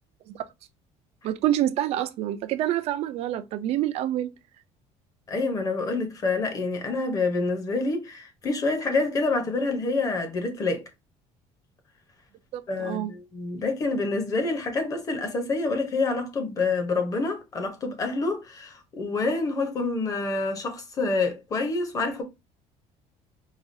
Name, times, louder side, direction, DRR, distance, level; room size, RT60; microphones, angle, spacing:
voice 1, 1.2-4.3 12.5-13.1, right 12 dB, 50° right, 0.4 m, -27 dB
voice 2, 5.3-10.8 12.7-22.2, left 3 dB, 25° left, 0.9 m, -27 dB
4.8 x 2.3 x 2.6 m
cardioid pair, 165°, 13 cm